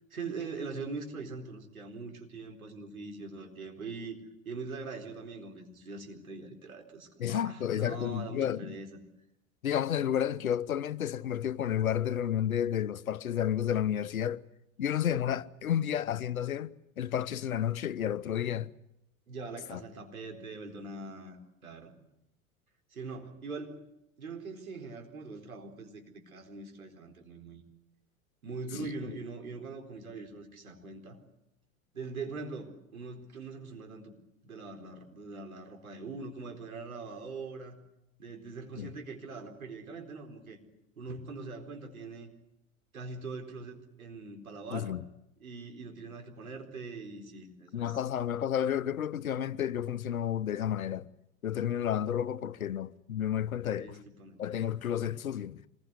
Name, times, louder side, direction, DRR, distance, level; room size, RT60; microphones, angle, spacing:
voice 1, 0.1-4.2 4.4-9.0 19.3-21.4 21.6-21.9 22.9-23.8 24.2-27.6 28.4-31.2 31.9-34.1 34.4-37.8 38.2-40.6 41.0-42.3 42.9-44.9 45.4-48.0 53.6-54.4, right 4 dB, 85° right, 4.4 m, -42 dB
voice 2, 7.2-8.8 9.6-14.4 14.8-18.7 19.7-19.8 28.8-29.1 38.8-38.9 44.7-45.0 47.7-51.1 51.4-54.0 54.4-55.7, left 10 dB, 85° left, 0.9 m, -31 dB
26.5 x 21.0 x 8.2 m
hypercardioid pair, 85°, 41 cm